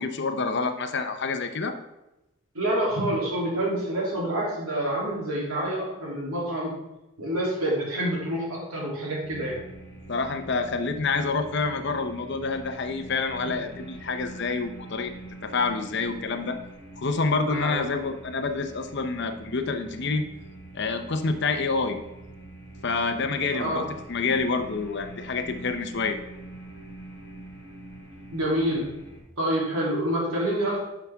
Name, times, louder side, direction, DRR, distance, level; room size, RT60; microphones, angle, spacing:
voice 1, 0.0-1.8 10.1-15.1 15.4-16.6 17.0-20.2 20.7-22.0 22.8-23.8 24.1-26.2, left 4 dB, 50° left, 7 dB, 0.7 m, -27 dB
voice 2, 2.5-6.8 7.2-9.6 17.4-17.9 23.5-23.9 28.3-28.9 29.4-30.8, right 1 dB, 85° right, -3 dB, 3.0 m, -27 dB
sound 1, 9.2-29.2, right 2 dB, 10° left, 2.8 m, -44 dB
11.0 x 5.9 x 3.5 m, 0.96 s
head